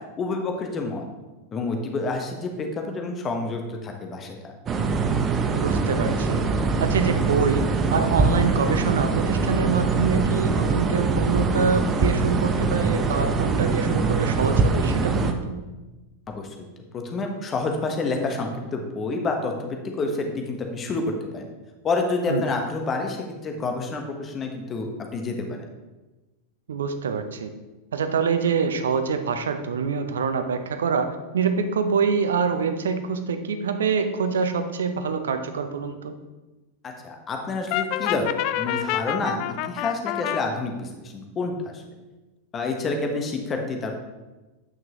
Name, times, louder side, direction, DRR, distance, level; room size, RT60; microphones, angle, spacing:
voice 1, 0.2-1.0 1.5-4.5 16.3-16.5 16.9-21.0 21.3-21.5 21.8-25.6 36.8-41.8 42.5-43.9, left 3 dB, 25° left, 3 dB, 1.1 m, -28 dB
sound 1, 4.7-15.3, right 4 dB, 30° right, 0.8 m, -23 dB
voice 2, 5.5-6.4 6.8-7.6 7.9-15.6 22.3-22.4 26.7-27.5 27.9-36.1, right 5 dB, 70° right, 9 dB, 0.7 m, -25 dB
Brass instrument, 37.7-40.4, left 12 dB, 50° left, 0.3 m, -27 dB
9.2 x 6.0 x 3.0 m, 1.1 s
figure-of-eight pair, 90°, 0 cm